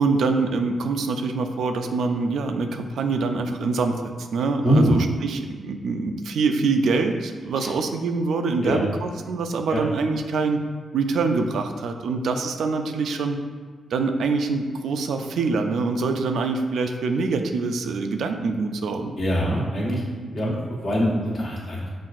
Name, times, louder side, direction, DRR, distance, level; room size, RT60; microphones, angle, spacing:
voice 1, 0.0-10.6 10.9-13.4 13.9-19.2 20.4-20.6, right 4 dB, 85° right, 6 dB, 0.3 m, -25 dB
voice 2, 4.6-4.9 8.6-8.8 9.7-9.8 19.2-20.0 20.3-21.9, equal, 55° left, -5 dB, 1.1 m, -23 dB
5.8 x 2.5 x 2.4 m, 1.5 s
cardioid pair, 80°, 0 cm